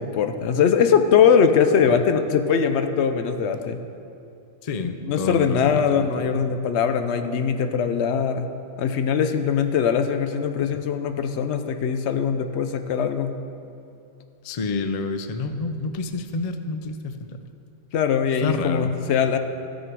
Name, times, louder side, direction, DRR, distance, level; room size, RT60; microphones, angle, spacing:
voice 1, 0.0-3.8 5.0-8.5 8.8-13.4 17.9-19.4, left 7 dB, 70° left, 8 dB, 0.9 m, -21 dB
voice 2, 4.6-6.4 14.4-17.4 18.4-18.9, left 3 dB, 50° left, 8 dB, 0.4 m, -29 dB
14.0 x 6.3 x 4.6 m, 2.7 s
omnidirectional pair, 1.2 m